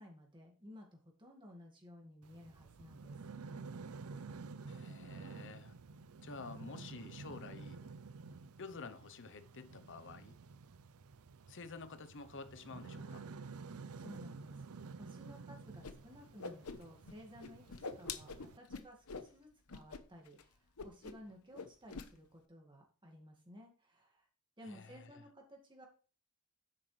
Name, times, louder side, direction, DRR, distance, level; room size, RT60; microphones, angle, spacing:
voice 1, 0.0-3.2 13.7-14.6 15.0-17.7 18.0-24.3 24.6-25.9, equal, 20° right, 2.0 m, -56 dB
sound 1, 2.2-18.6, right 4 dB, 80° right, 0.5 m, -51 dB
voice 2, 4.7-5.8 6.2-7.8 8.6-10.4 11.5-13.3 24.6-25.2, left 4 dB, 60° left, 0.9 m, -50 dB
Whoosh swoosh swish, 15.8-15.9 16.2-17.1 17.4-19.3 19.7-20.0 20.3-20.4 20.8-21.3 21.5-22.1, left 4 dB, 85° left, 1.0 m, -45 dB
9.8 x 7.6 x 3.3 m
head